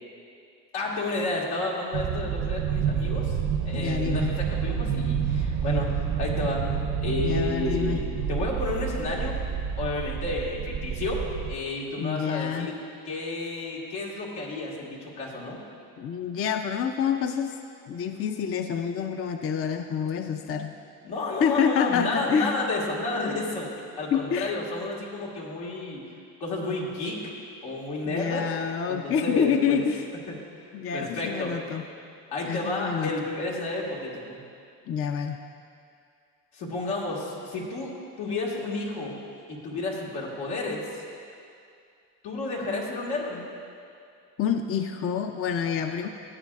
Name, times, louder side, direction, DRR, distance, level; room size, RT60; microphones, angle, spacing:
voice 1, 0.7-3.4 3.7-6.7 7.0-9.4 9.8-12.7 13.1-15.6 20.4-20.6 21.0-23.7 24.0-26.0 26.4-27.3 27.6-28.5 28.9-29.8 30.3-30.4 30.9-31.5 32.3-34.4 36.5-39.2 39.5-40.9 42.2-43.4, left 2 dB, 85° left, -4 dB, 1.9 m, -31 dB
sound 1, 1.9-11.6, right 7 dB, 65° right, 0.8 m, -28 dB
voice 2, 3.7-4.3 7.2-8.0 12.0-12.7 16.0-17.6 17.9-20.7 21.4-22.5 24.1-24.5 28.1-30.1 30.7-31.8 32.4-33.1 34.9-35.4 44.4-46.1, left 7 dB, 35° left, 6 dB, 0.5 m, -27 dB
14.5 x 8.8 x 2.4 m, 2.4 s
supercardioid pair, 75°, 40 cm